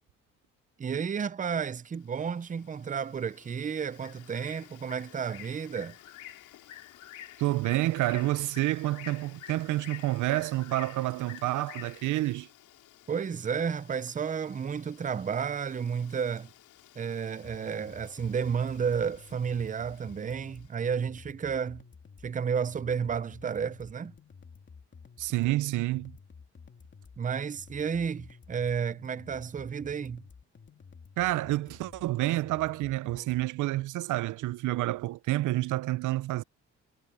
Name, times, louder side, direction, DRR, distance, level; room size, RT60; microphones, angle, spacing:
voice 1, 0.8-6.0 13.1-16.5 17.0-21.8 22.2-24.1 27.2-30.2, right 6 dB, 25° right, 0.6 m, -32 dB
Bird, 1.9-20.7, left 11 dB, 85° left, 3.3 m, -51 dB
voice 2, 7.4-12.5 25.2-26.2 31.2-36.4, right 17 dB, 80° right, 0.6 m, -29 dB
sound 1, 17.4-33.4, left 5 dB, 40° left, 2.9 m, -52 dB
cardioid pair, 90°, 30 cm